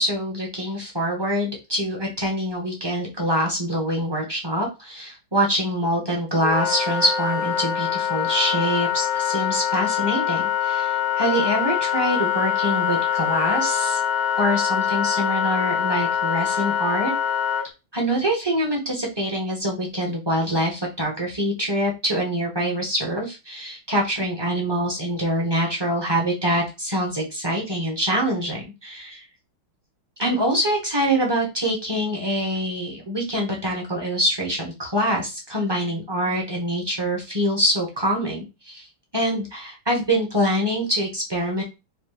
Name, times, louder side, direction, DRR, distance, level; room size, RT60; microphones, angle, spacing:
voice 1, 0.0-14.0 14.4-17.1 17.9-29.2 30.2-38.9 39.1-41.6, equal, 20° right, -1 dB, 0.7 m, -25 dB
Wind instrument woodwind instrument, 6.4-17.7, left 8 dB, 80° left, 1.5 m, -24 dB
5.0 x 2.3 x 3.4 m, 0.26 s
omnidirectional pair, 2.2 m